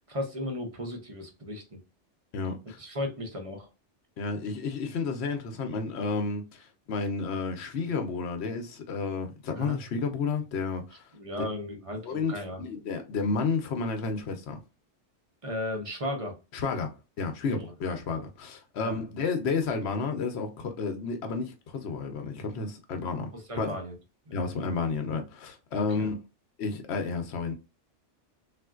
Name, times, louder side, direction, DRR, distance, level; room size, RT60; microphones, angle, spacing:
voice 1, 0.1-1.8 2.8-3.7 9.6-9.8 11.1-12.6 15.4-16.4 17.8-18.0 18.8-18.9 23.3-24.0 24.3-24.4 25.7-26.1, left 1 dB, 35° right, 0.7 m, -35 dB
voice 2, 2.3-2.8 4.2-11.1 12.0-12.3 12.6-14.6 16.5-23.3 23.6-23.8 24.3-26.2 26.6-27.5, left 4 dB, 65° left, 0.9 m, -31 dB
3.5 x 2.5 x 2.3 m
omnidirectional pair, 1.2 m